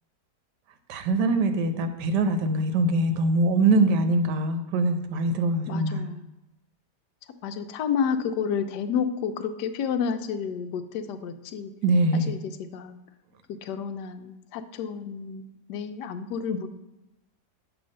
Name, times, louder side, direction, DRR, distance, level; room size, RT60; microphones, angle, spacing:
voice 1, 0.9-6.1 11.8-12.3, right 2 dB, 80° right, 8 dB, 1.3 m, -23 dB
voice 2, 5.7-6.2 7.4-11.7 12.1-13.0 13.5-16.7, left 7 dB, 80° left, 9 dB, 1.2 m, -30 dB
7.9 x 3.1 x 6.3 m, 0.98 s
omnidirectional pair, 1.8 m